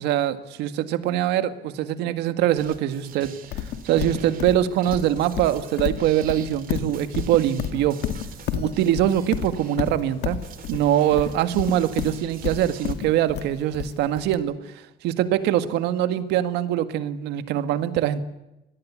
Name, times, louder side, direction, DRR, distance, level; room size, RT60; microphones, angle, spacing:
voice 1, 0.0-8.0 8.5-10.4 10.7-18.2, right 11 dB, 90° right, 10 dB, 1.9 m, -23 dB
sound 1, 2.6-12.9, right 8 dB, 55° right, 2.9 m, -45 dB
Livestock farm animals working animals, 3.5-14.3, left 10 dB, 80° left, 2.3 m, -30 dB
26.0 x 18.5 x 8.5 m, 0.92 s
cardioid pair, 110°, 17 cm